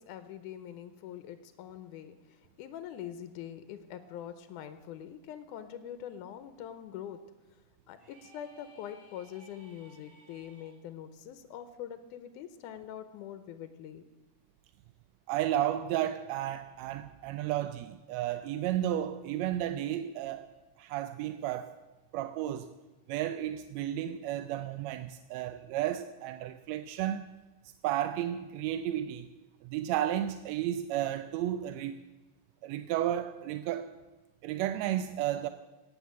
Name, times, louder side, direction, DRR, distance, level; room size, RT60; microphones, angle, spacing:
voice 1, 0.0-7.2 7.5-7.6 7.9-14.0, left 10 dB, 85° left, 2.2 m, -44 dB
sound 1, 8.0-10.8, right 1 dB, 10° right, 4.2 m, -59 dB
voice 2, 15.3-20.5 20.8-21.8 22.1-22.7 23.1-27.3 27.8-29.3 29.6-32.0 32.6-33.9 34.4-35.5, right 12 dB, 80° right, 1.6 m, -33 dB
17.5 x 7.2 x 7.4 m
omnidirectional pair, 3.5 m